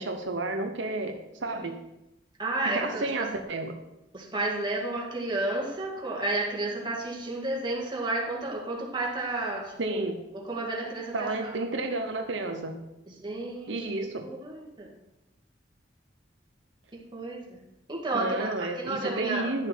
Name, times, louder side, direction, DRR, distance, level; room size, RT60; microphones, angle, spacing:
voice 1, 0.0-1.8 2.6-3.7 9.8-10.2 11.1-12.8 13.7-14.3 18.1-19.7, right 2 dB, 80° right, 4 dB, 1.0 m, -31 dB
voice 2, 2.4-3.3 4.1-10.0 10.3-11.5 13.1-13.9 14.2-14.9 17.1-17.6 17.9-19.5, right 2 dB, 25° right, -3 dB, 1.9 m, -32 dB
11.0 x 6.8 x 4.5 m, 0.92 s
head